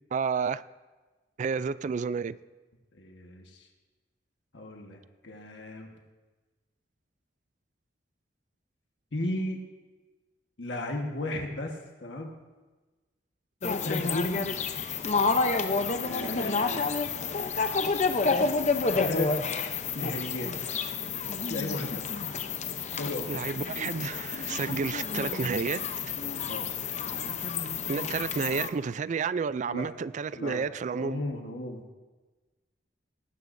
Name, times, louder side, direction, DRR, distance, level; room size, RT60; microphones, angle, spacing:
voice 1, 0.1-0.6 1.4-2.4 23.3-25.9 27.9-31.2, right 5 dB, 40° right, 0.3 m, -30 dB
voice 2, 2.9-3.7 4.5-5.9 9.1-9.6 10.6-12.3 13.8-14.4 16.0-16.9 18.9-19.3 19.9-20.5 21.5-22.0 22.9-23.4 26.5-26.7 29.7-29.9 30.3-30.7 31.0-31.8, left 1 dB, 75° left, 1.4 m, -35 dB
sound 1, 13.6-28.7, left 4 dB, 40° left, 0.7 m, -29 dB
18.5 x 14.5 x 2.6 m
head